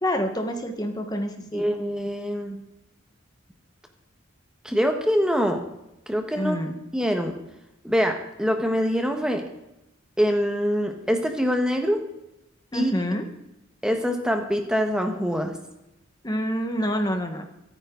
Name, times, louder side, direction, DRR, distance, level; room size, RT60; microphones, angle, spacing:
voice 1, 0.0-1.6 6.4-6.8 12.7-13.3 16.2-17.5, equal, 20° left, 5 dB, 1.4 m, -27 dB
voice 2, 1.5-2.6 4.6-5.6 6.1-6.6 6.9-7.3 7.8-9.4 10.2-12.0 12.7-12.9 13.8-15.6, equal, 5° right, 4 dB, 1.4 m, -24 dB
25.5 x 9.4 x 3.9 m, 0.89 s
head